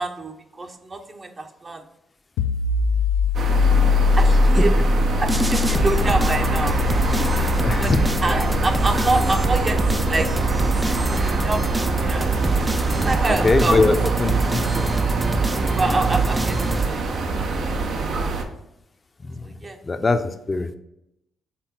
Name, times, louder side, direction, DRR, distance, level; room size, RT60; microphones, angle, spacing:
voice 1, 0.0-1.8 4.2-4.8 5.2-6.8 7.8-7.9 8.2-9.8 10.1-12.3 12.9-13.8 15.7-17.0 17.4-17.7 19.4-19.8, right 2 dB, 35° right, 6 dB, 0.8 m, -26 dB
sound 1, 2.4-13.8, left 4 dB, 85° left, 0.4 m, -23 dB
sound 2, 3.3-18.4, right 4 dB, 65° right, 0.8 m, -26 dB
sound 3, 5.3-17.4, right 2 dB, 15° right, 0.5 m, -24 dB
voice 2, 7.6-8.0 13.3-13.9 14.2-14.6 19.3-19.4 19.9-20.2 20.5-20.7, left 3 dB, 35° left, 9 dB, 0.6 m, -20 dB
5.9 x 4.0 x 4.5 m, 0.85 s
supercardioid pair, 60°, 0 cm